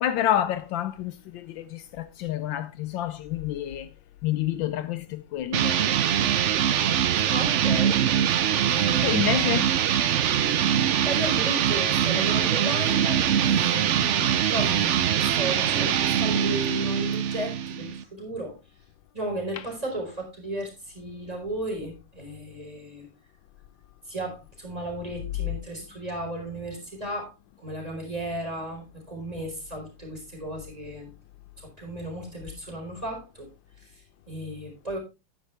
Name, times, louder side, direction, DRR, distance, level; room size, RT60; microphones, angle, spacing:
voice 1, 0.0-3.9 4.2-5.8 9.0-9.7 19.5-19.6, left 11 dB, 75° left, 1.4 m, -28 dB
sound 1, 5.5-18.0, right 9 dB, 75° right, 0.6 m, -23 dB
voice 2, 7.3-8.0 8.3-9.6 11.0-18.6 19.1-23.1 24.1-27.3 27.6-31.1 31.6-33.5 33.8-35.0, right 1 dB, 20° right, 4.5 m, -35 dB
11.0 x 9.5 x 3.4 m
omnidirectional pair, 2.1 m